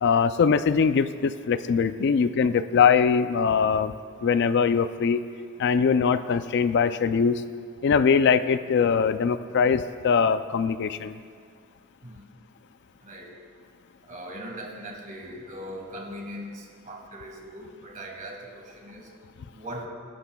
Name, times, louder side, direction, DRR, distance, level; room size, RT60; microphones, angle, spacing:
voice 1, 0.0-3.9 4.2-5.2 5.6-7.4 7.8-11.2, left 6 dB, 55° left, 12 dB, 0.4 m, -22 dB
voice 2, 14.0-19.1 19.5-19.9, equal, 40° right, 1 dB, 1.9 m, -40 dB
21.5 x 11.5 x 2.3 m, 2.1 s
head